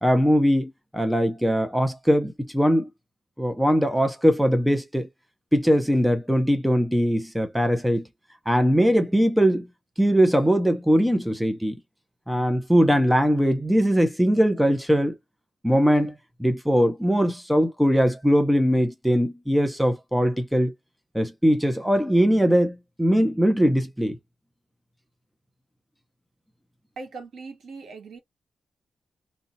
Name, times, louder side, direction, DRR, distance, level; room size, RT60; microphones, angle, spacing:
voice 1, 0.0-2.9 3.4-5.1 5.5-8.1 8.5-9.7 10.0-11.7 12.3-15.1 15.6-16.1 16.4-20.7 21.1-24.2, equal, ahead, 0.6 m, -21 dB
voice 2, 27.0-28.2, right 4 dB, 65° right, 1.5 m, -40 dB
3.2 x 2.7 x 4.0 m
wide cardioid pair, 175°, 0 cm